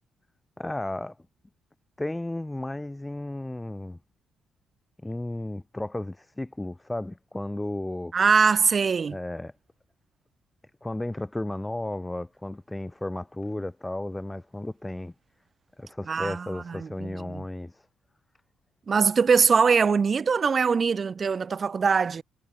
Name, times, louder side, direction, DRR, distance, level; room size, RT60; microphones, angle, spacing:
voice 1, 0.6-1.2 2.0-4.0 5.0-8.1 9.1-9.5 10.8-15.1 15.8-17.9, left 1 dB, 10° left, 0.4 m, -34 dB
voice 2, 8.1-9.2 16.1-17.4 18.9-22.2, right 5 dB, 40° right, 0.5 m, -22 dB
cardioid pair, 90°, 0 cm